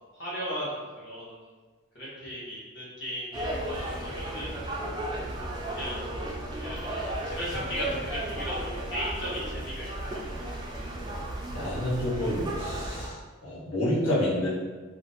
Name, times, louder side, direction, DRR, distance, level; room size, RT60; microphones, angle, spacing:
voice 1, 0.1-1.4 1.9-4.5 5.7-6.0 6.6-10.4, equal, 55° left, -8 dB, 1.0 m, -36 dB
sound 1, 3.3-13.1, right 1 dB, 20° right, 0.3 m, -34 dB
voice 2, 11.5-13.2 13.4-14.5, left 1 dB, 85° left, -10 dB, 0.9 m, -28 dB
2.5 x 2.1 x 3.9 m, 1.4 s
head